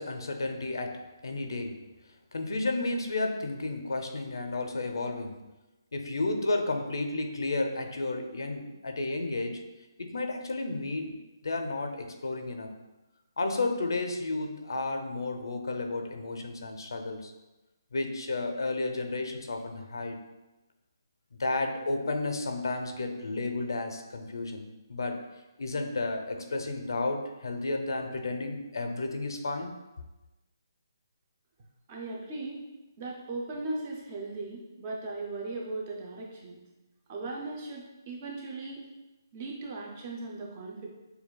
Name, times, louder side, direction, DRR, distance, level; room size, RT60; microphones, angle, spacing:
voice 1, 0.0-1.8 2.3-5.4 5.9-9.6 10.0-11.2 11.4-12.7 13.4-17.3 17.9-20.2 21.4-25.2 25.6-29.8, left 2 dB, 80° left, 5 dB, 0.5 m, -32 dB
voice 2, 31.9-32.6 33.0-36.6 37.1-38.8 39.3-40.9, right 2 dB, 20° right, -2 dB, 0.4 m, -38 dB
6.6 x 2.2 x 2.2 m, 1.1 s
hypercardioid pair, 175°, 2 cm